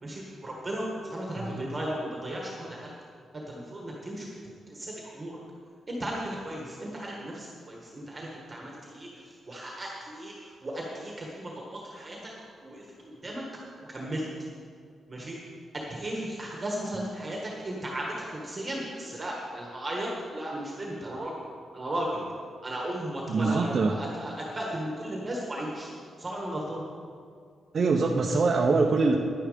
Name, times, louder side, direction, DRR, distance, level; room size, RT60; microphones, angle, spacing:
voice 1, 0.0-2.9 3.3-4.3 4.7-5.4 5.9-12.3 12.6-13.4 13.8-14.3 15.1-15.4 15.7-21.4 21.7-22.2 22.6-25.9 26.2-26.8, right 1 dB, 20° right, -2 dB, 1.4 m, -35 dB
voice 2, 1.4-1.7 23.3-23.9 27.7-29.2, right 4 dB, 40° right, 0 dB, 0.6 m, -24 dB
10.5 x 10.0 x 5.0 m, 2.2 s
wide cardioid pair, 170°, 0 cm